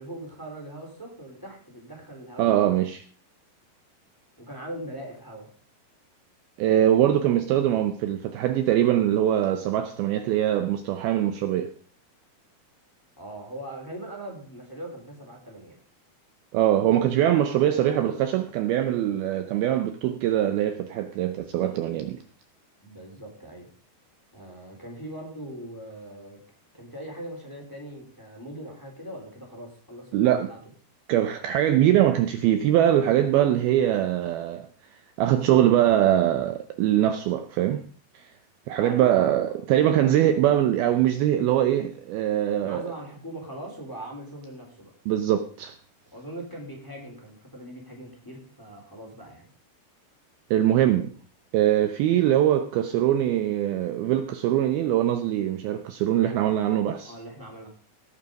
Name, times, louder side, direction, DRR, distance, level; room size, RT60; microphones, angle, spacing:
voice 1, 0.0-2.8 4.4-5.5 13.2-15.8 22.8-23.7 24.3-26.4 26.7-30.6 38.7-39.5 42.6-44.9 46.1-49.5 57.0-57.7, right 1 dB, 5° left, 3.2 m, -40 dB
voice 2, 2.4-3.0 6.6-11.7 16.5-22.2 30.1-30.5 31.1-34.7 35.2-37.8 38.1-38.3 38.7-42.9 45.1-45.7 50.5-51.1 51.5-57.1, right 11 dB, 75° right, 2.4 m, -22 dB
17.5 x 7.2 x 5.2 m
omnidirectional pair, 4.9 m